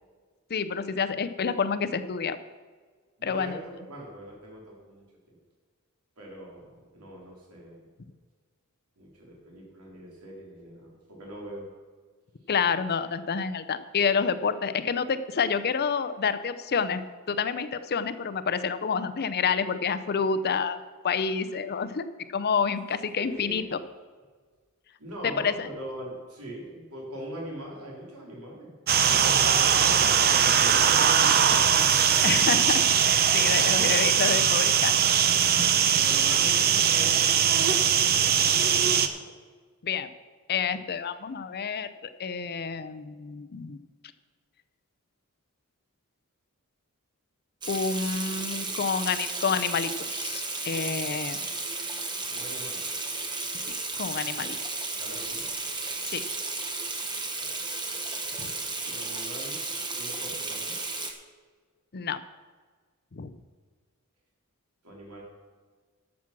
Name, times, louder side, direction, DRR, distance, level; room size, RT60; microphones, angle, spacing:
voice 1, 0.5-2.4 3.2-3.6 12.5-17.0 17.3-22.1 22.3-23.8 25.2-25.7 32.2-32.8 33.3-35.0 36.3-36.4 39.8-40.1 40.5-41.9 42.2-43.8 47.7-51.4 53.7-54.6 56.1-56.2 58.4-58.5 61.9-62.2 63.1-63.3, left 6 dB, 45° left, 13 dB, 0.6 m, -28 dB
voice 2, 3.2-5.4 6.2-7.8 9.0-11.7 23.2-23.8 25.0-28.7 29.2-30.0 30.4-32.4 36.0-38.0 38.3-39.1 52.3-52.8 54.4-54.5 55.0-55.5 57.4-57.5 58.8-59.6 60.0-60.8 64.8-65.2, equal, 85° right, -2 dB, 3.8 m, -42 dB
sound 1, 28.9-39.1, right 8 dB, 45° right, 0.7 m, -21 dB
Water tap faucet / Sink (filling or washing), 47.6-61.1, right 3 dB, 20° right, 1.1 m, -33 dB
12.0 x 7.3 x 6.0 m, 1.5 s
head